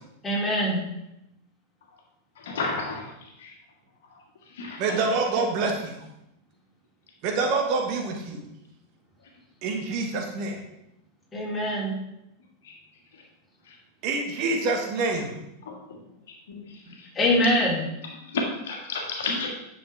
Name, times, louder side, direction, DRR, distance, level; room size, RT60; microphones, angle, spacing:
voice 1, 0.2-0.8 11.3-12.0 16.8-17.8, left 1 dB, 10° left, -5 dB, 3.7 m, -24 dB
voice 2, 2.4-3.1 3.4-3.5 4.6-5.0 15.7-15.8 16.5-16.6 18.3-19.5, left 3 dB, 60° left, 1 dB, 1.7 m, -30 dB
voice 3, 4.8-5.9 7.2-8.4 9.6-10.6 14.0-15.4, right 3 dB, 40° right, 2 dB, 1.6 m, -26 dB
10.0 x 6.9 x 3.5 m, 0.84 s
figure-of-eight pair, 90°, 0 cm